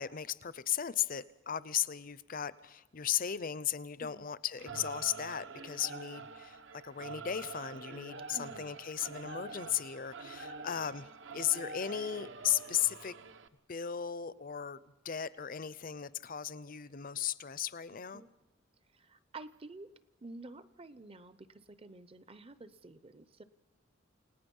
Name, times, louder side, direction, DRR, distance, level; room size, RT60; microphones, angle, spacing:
voice 1, 0.0-13.1 13.7-14.8 15.0-18.2, left 10 dB, 45° left, 0.7 m, -36 dB
Singing / Musical instrument, 4.6-13.5, right 4 dB, 65° right, 1.1 m, -46 dB
voice 2, 8.3-8.8 18.1-18.3 18.9-19.9 20.2-23.4, right 2 dB, 30° right, 0.7 m, -50 dB
29.0 x 18.5 x 5.5 m
head